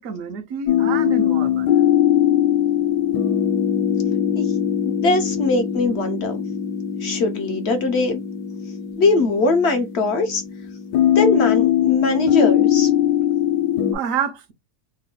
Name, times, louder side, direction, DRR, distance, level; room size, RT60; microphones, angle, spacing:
voice 1, 0.0-1.7 13.9-14.5, right 6 dB, 65° right, 1.0 m, -28 dB
sound 1, 0.7-13.9, left 10 dB, 80° left, 1.1 m, -21 dB
voice 2, 4.8-6.4 7.0-8.2 9.0-10.4 11.1-12.9, left 3 dB, 65° left, 0.6 m, -21 dB
3.1 x 2.2 x 3.5 m
omnidirectional pair, 1.6 m